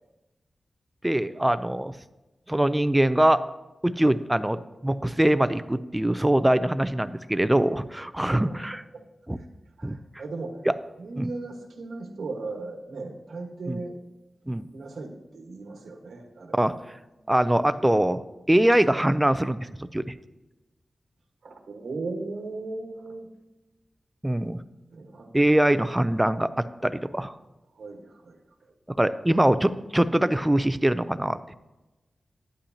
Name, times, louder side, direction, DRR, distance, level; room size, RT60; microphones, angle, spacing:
voice 1, 1.0-2.0 2.5-3.4 3.8-8.8 9.3-9.4 9.8-10.0 10.7-10.8 11.2-11.3 13.7-13.8 14.5-14.6 16.6-16.7 17.3-18.2 18.5-20.1 24.2-24.6 25.3-27.3 29.0-31.4, right 1 dB, 10° right, 13 dB, 0.4 m, -23 dB
voice 2, 8.3-8.6 8.9-9.0 9.3-9.5 9.8-10.7 11.0-14.0 14.7-16.7 21.4-23.3 24.9-25.5 27.7-28.7, right 3 dB, 85° right, 2 dB, 1.3 m, -37 dB
11.5 x 10.0 x 2.8 m, 1.1 s
wide cardioid pair, 100°, 0 cm